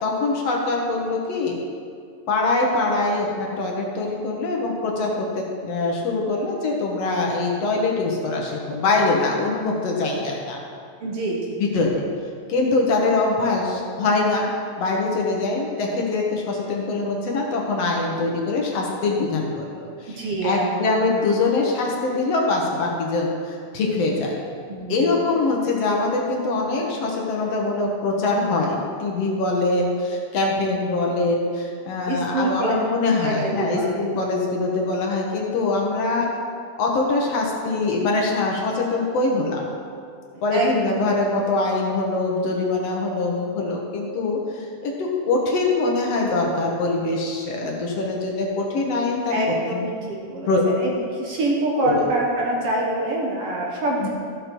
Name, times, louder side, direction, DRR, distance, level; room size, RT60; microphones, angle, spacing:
voice 1, 0.0-1.6 2.3-10.6 11.6-12.1 12.5-14.5 14.8-20.1 20.4-24.4 24.9-36.3 36.8-39.7 40.4-49.4 49.7-49.8 50.5-50.6 51.8-52.1 54.0-54.1, left 3 dB, 65° left, -1 dB, 2.1 m, -23 dB
voice 2, 11.0-11.6 20.1-20.9 24.7-25.1 32.1-32.7 33.2-34.0 40.3-40.8 49.3-54.1, right 2 dB, 60° right, -2 dB, 1.9 m, -25 dB
14.0 x 6.8 x 4.5 m, 2.3 s
omnidirectional pair, 3.3 m